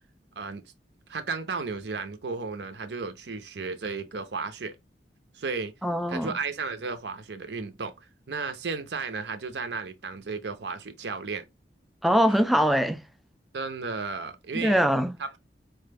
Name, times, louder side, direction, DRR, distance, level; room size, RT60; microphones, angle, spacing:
voice 1, 1.1-4.8 5.3-5.7 6.1-7.9 8.3-11.4 13.5-14.8 15.2-15.4, right 4 dB, 70° right, 0.7 m, -34 dB
voice 2, 5.8-6.3 12.0-13.0 14.5-15.1, equal, ahead, 0.3 m, -22 dB
4.5 x 2.2 x 3.3 m
head